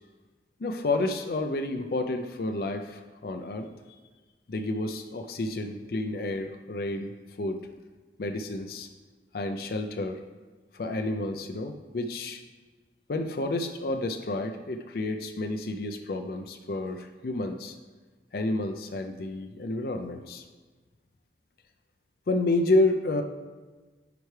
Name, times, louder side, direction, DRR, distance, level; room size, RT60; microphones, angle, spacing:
voice 1, 0.6-3.7 4.5-7.1 7.4-7.6 8.2-8.9 9.3-10.2 10.7-12.4 13.1-17.8 18.3-20.4 22.3-23.2, left 2 dB, 55° left, 6 dB, 0.4 m, -30 dB
9.9 x 4.6 x 3.2 m, 1.3 s
head